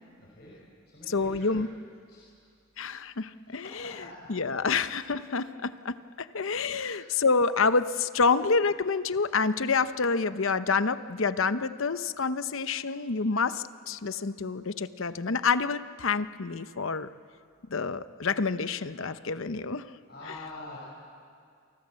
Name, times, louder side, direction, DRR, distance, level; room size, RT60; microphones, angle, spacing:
voice 1, 0.2-0.6 0.9-1.5 2.1-2.3 3.5-4.1 6.7-6.9 20.1-20.8, left 2 dB, 50° left, -5 dB, 5.7 m, -45 dB
voice 2, 1.1-1.7 2.8-3.9 4.3-17.1 17.7-19.9, left 4 dB, 70° left, 12 dB, 0.8 m, -28 dB
29.0 x 24.5 x 7.6 m, 2.3 s
head